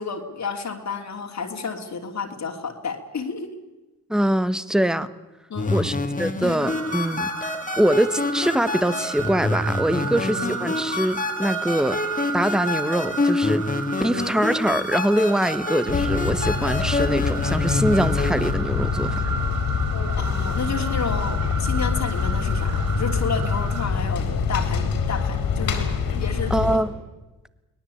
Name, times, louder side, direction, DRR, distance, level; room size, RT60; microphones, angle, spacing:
voice 1, 0.0-3.5 5.5-5.9 20.2-25.9 26.1-26.8, left 5 dB, 50° left, 2 dB, 3.0 m, -31 dB
voice 2, 4.1-5.1 5.7-12.0 12.3-13.6 14.0-19.2 26.5-26.9, right 1 dB, ahead, 14 dB, 1.3 m, -23 dB
sound 1, 5.5-18.5, left 3 dB, 20° left, 2.4 m, -27 dB
sound 2, 6.6-23.9, right 7 dB, 55° right, 1.7 m, -34 dB
sound 3, 15.9-26.8, left 6 dB, 75° left, 4.1 m, -25 dB
24.5 x 18.5 x 8.6 m, 1.1 s
cardioid pair, 70°, 35 cm